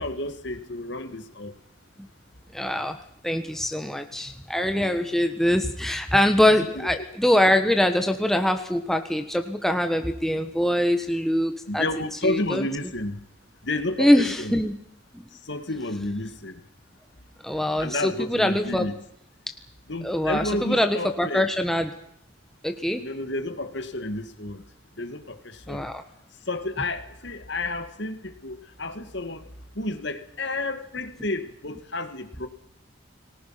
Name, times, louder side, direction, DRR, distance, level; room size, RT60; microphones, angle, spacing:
voice 1, 0.0-1.5 6.5-6.9 11.7-13.2 13.6-14.6 15.4-16.6 17.8-18.9 19.9-21.5 23.0-24.6 25.0-25.9 26.5-29.5 29.8-32.5, left 2 dB, 55° left, 9 dB, 2.2 m, -31 dB
voice 2, 2.5-3.0 3.2-11.8 12.2-12.6 14.0-14.7 15.1-15.2 17.4-18.9 20.0-21.9 22.6-23.0 25.7-26.0, left 1 dB, ahead, 6 dB, 1.5 m, -23 dB
29.5 x 19.5 x 6.0 m, 0.69 s
head